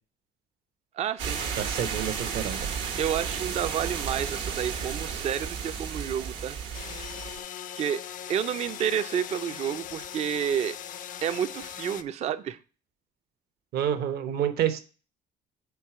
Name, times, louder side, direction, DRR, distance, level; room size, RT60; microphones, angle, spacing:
voice 1, 0.9-1.4 3.0-6.6 7.8-8.0 8.3-10.8 11.2-12.6, right 9 dB, 40° right, 11 dB, 0.4 m, -30 dB
sound 1, 1.2-7.4, right 6 dB, 90° right, 1.2 m, -33 dB
voice 2, 1.6-2.6 13.7-14.8, right 10 dB, 65° right, 10 dB, 0.7 m, -28 dB
sound 2, 6.7-12.0, left 10 dB, 50° left, 0.4 m, -40 dB
4.6 x 4.1 x 5.6 m, 0.37 s
cardioid pair, 110°, 17 cm